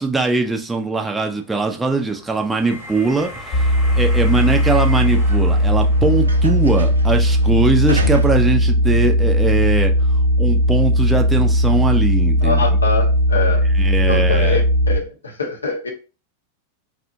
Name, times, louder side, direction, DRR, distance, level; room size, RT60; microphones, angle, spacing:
voice 1, 0.0-3.7 3.9-12.6 13.8-14.6, right 3 dB, 10° right, 0.4 m, -21 dB
sound 1, 0.9-9.3 9.8-14.8, right 2 dB, 75° right, 0.3 m, -35 dB
sound 2, 1.9-6.7, left 1 dB, 10° left, 0.9 m, -39 dB
sound 3, 3.5-15.0, equal, 45° left, 0.9 m, -17 dB
voice 2, 12.4-13.7 14.1-14.6 14.9-15.9, left 4 dB, 75° left, 0.6 m, -24 dB
2.7 x 2.2 x 2.6 m
figure-of-eight pair, 90°, 0 cm